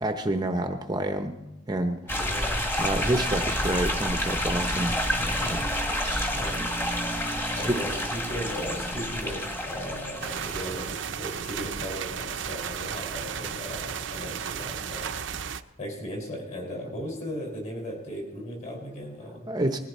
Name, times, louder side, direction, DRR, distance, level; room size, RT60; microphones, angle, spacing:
voice 1, 0.0-1.3 1.7-2.3 2.8-5.0 5.5-5.6 6.0-6.7 7.5-7.8 19.5-19.8, right 1 dB, 20° right, 6 dB, 0.8 m, -29 dB
voice 2, 2.1-2.7 4.7-6.8 7.5-15.1 15.8-19.5, equal, 35° left, 1 dB, 5.2 m, -37 dB
sound 1, 2.1-10.9, left 1 dB, 10° left, 1.6 m, -29 dB
sound 2, 10.2-15.6, right 7 dB, 70° right, 0.7 m, -34 dB
20.5 x 14.5 x 4.2 m, 0.92 s
head